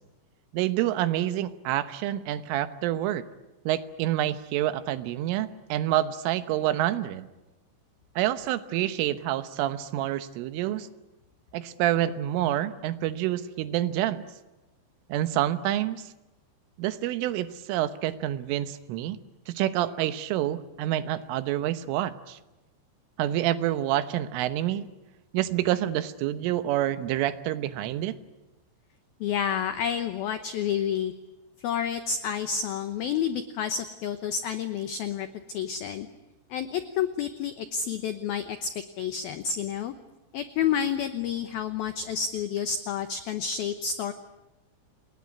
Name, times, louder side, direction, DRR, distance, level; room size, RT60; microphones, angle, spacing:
voice 1, 0.5-3.3 3.7-7.3 8.2-10.9 11.5-14.3 15.1-16.1 16.8-19.2 19.5-22.4 23.2-24.9 25.3-28.2, right 13 dB, 80° right, 12 dB, 3.5 m, -27 dB
voice 2, 29.2-31.1 31.6-36.1 36.5-38.7 39.0-39.9 40.3-44.1, left 8 dB, 85° left, 10 dB, 2.1 m, -29 dB
28.5 x 20.0 x 9.7 m, 1.0 s
omnidirectional pair, 5.8 m